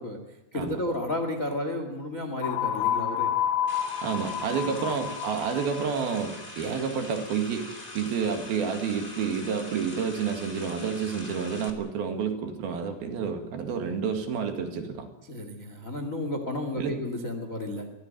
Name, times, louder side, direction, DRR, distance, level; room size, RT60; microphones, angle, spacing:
voice 1, 0.0-3.3 4.8-4.9 15.3-17.9, left 1 dB, 60° left, 5 dB, 0.8 m, -32 dB
sound 1, 2.4-6.0, left 10 dB, 85° left, 3.5 m, -29 dB
sound 2, 3.7-11.7, left 2 dB, 20° left, 0.9 m, -43 dB
voice 2, 4.0-7.7 7.9-15.1 16.7-17.0, right 6 dB, 60° right, 5 dB, 3.4 m, -29 dB
23.5 x 16.0 x 9.1 m, 0.91 s
omnidirectional pair, 5.7 m